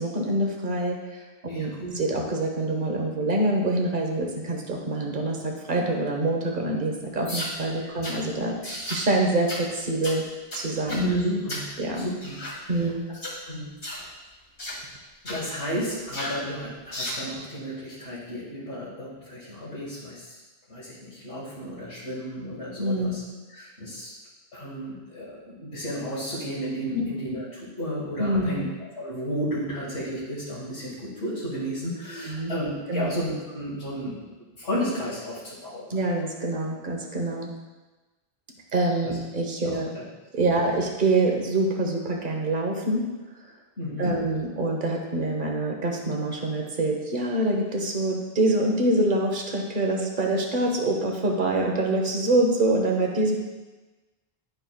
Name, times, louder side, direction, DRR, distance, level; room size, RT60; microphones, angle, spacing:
voice 1, 0.0-10.2 10.5-11.1 11.8-12.1 12.7-13.1 22.8-23.2 26.9-27.0 28.2-28.6 32.1-32.5 32.9-33.1 35.9-37.5 38.7-39.9 40.3-43.1 44.0-53.4, right 2 dB, 50° right, 1 dB, 1.2 m, -25 dB
voice 2, 1.5-2.0 7.8-8.0 10.9-12.9 13.5-13.9 15.2-20.4 20.7-23.2 23.5-24.1 24.5-28.6 29.0-36.0 39.0-39.2 39.6-40.0 43.8-44.3, equal, 85° left, -10 dB, 2.0 m, -33 dB
sound 1, 7.2-7.6 8.0-8.2 8.6-9.0 9.5-9.7 10.0-10.2 10.5-11.1 11.5-11.7 12.2-12.6 13.1-13.4 13.8-14.0 14.6-14.8 15.2-15.4 16.1-16.4 16.9-17.2, left 1 dB, 50° left, 2.0 m, -34 dB
10.5 x 5.7 x 2.3 m, 1.2 s
omnidirectional pair, 1.1 m